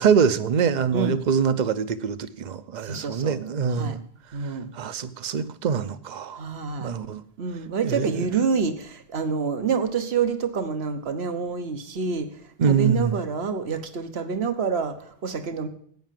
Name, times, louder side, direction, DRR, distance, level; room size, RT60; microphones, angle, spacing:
voice 1, 0.0-4.0 4.4-6.5 6.8-7.2 7.8-8.2 12.6-13.2, right 6 dB, 50° right, 0.8 m, -24 dB
voice 2, 2.8-3.3 3.7-4.0 4.3-4.7 6.4-6.9 7.4-12.3 12.7-15.7, right 5 dB, 80° right, 1.3 m, -27 dB
11.0 x 8.6 x 7.4 m
omnidirectional pair, 1.0 m